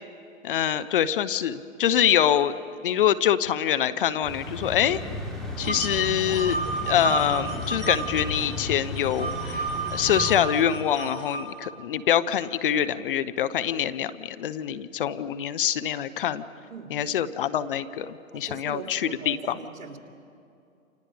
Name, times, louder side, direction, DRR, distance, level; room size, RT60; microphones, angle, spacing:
voice 1, 0.4-2.5 2.8-5.0 5.6-6.6 6.9-9.7 9.9-16.4 16.9-19.6, left 10 dB, 40° left, 14 dB, 0.8 m, -25 dB
sound 1, 4.2-10.9, left 1 dB, ahead, 3.6 m, -35 dB
sound 2, 5.6-8.4 8.7-11.4, right 3 dB, 15° right, 7.9 m, -31 dB
voice 2, 18.3-20.0, right 5 dB, 65° right, 4 dB, 2.9 m, -40 dB
29.0 x 27.5 x 5.1 m, 2.6 s
hypercardioid pair, 135°, 42 cm